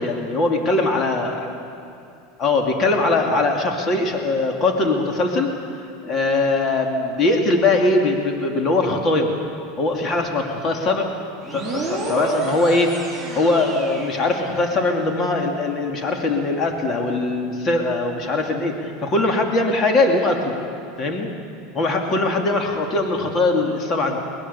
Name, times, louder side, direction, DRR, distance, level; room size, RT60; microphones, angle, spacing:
voice 1, 0.0-1.6 2.4-5.5 6.0-9.3 9.8-11.1 11.5-12.9 13.3-20.5 21.0-21.3 21.7-24.2, left 2 dB, 35° left, 2 dB, 2.7 m, -21 dB
sound 1, 11.4-14.9, right 2 dB, ahead, 6.5 m, -29 dB
22.5 x 20.5 x 7.0 m, 2.6 s
supercardioid pair, 130°, 0 cm